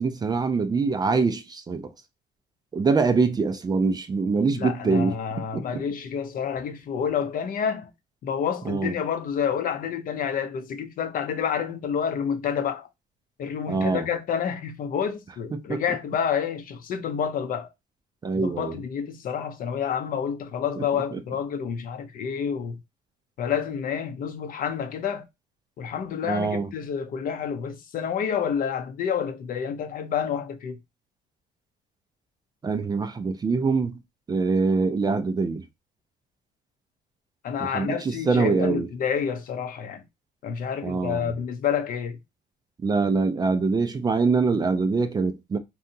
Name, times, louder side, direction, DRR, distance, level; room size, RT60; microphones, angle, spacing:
voice 1, 0.0-1.9 2.7-5.1 5.5-5.8 8.7-8.9 13.7-14.0 15.7-15.8 18.2-18.7 21.1-21.2 26.2-26.7 32.6-34.0 34.3-35.6 37.6-38.9 40.8-41.3 42.8-45.6, right 4 dB, 25° right, 0.4 m, -24 dB
voice 2, 4.5-7.9 8.2-12.9 13.4-17.7 18.3-22.8 23.4-25.2 25.8-30.8 37.4-40.0 40.4-42.2, left 7 dB, 55° left, 0.6 m, -29 dB
2.8 x 2.3 x 2.6 m
cardioid pair, 110°, 17 cm